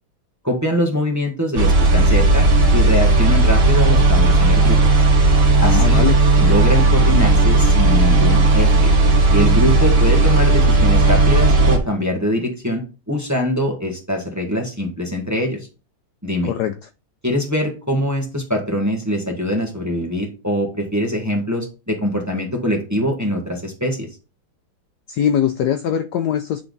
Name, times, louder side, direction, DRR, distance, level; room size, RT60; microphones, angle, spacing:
voice 1, 0.4-2.5 2.7-4.8 5.6-6.0 6.4-8.9 9.3-15.7 16.2-16.5 17.2-24.1, equal, 10° right, 1.2 m, -23 dB
sound 1, 1.6-11.8, right 2 dB, 75° right, 2.6 m, -14 dB
voice 2, 5.6-6.1 16.4-16.7 25.1-26.6, left 9 dB, 80° left, 0.9 m, -21 dB
9.8 x 3.4 x 3.9 m
omnidirectional pair, 2.2 m